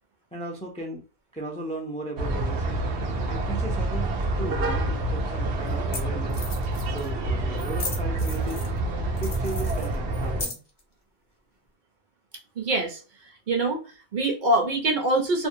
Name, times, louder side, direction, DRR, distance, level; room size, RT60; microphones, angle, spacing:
voice 1, 0.3-1.0 1.3-2.8 3.3-4.1 4.4-6.4 6.9-8.6 9.1-10.6, right 2 dB, 10° left, 0 dB, 0.3 m, -36 dB
sound 1, 2.2-10.4, right 2 dB, 80° right, 1.0 m, -27 dB
sound 2, 4.8-4.9 5.7-5.8 5.9-6.0 6.3-7.1 7.6-8.8 9.2-10.8, left 3 dB, 40° left, 0.7 m, -36 dB
voice 2, 12.6-15.5, right 2 dB, 50° right, 2 dB, 0.7 m, -25 dB
2.5 x 2.1 x 2.6 m, 0.34 s
omnidirectional pair, 1.1 m